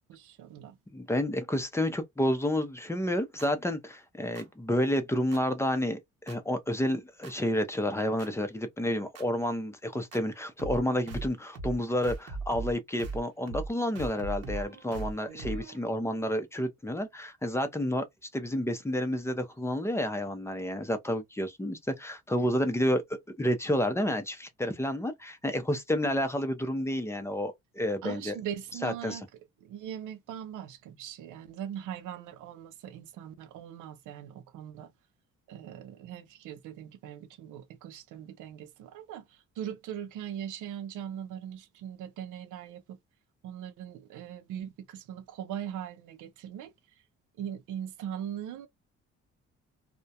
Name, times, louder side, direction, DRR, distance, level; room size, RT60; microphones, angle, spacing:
voice 1, 0.1-0.8 28.0-29.3 29.6-34.9 35.5-43.0 43.4-46.7 47.4-48.7, right 10 dB, 85° right, 0.6 m, -40 dB
voice 2, 0.9-6.0 6.3-18.1 18.3-28.3 28.8-29.2, left 1 dB, 10° left, 0.5 m, -30 dB
sound 1, 3.4-3.5 4.3-4.4 5.3-5.4 6.3-6.4 7.2-7.3 8.2-8.3 9.1-9.2 10.1-10.2 10.6-10.8 11.1-11.3 11.5-11.8 12.0-12.7 13.0-13.2 13.5-13.7 13.9-15.8, right 3 dB, 55° right, 0.9 m, -38 dB
2.3 x 2.1 x 2.7 m
cardioid pair, 90°, 30 cm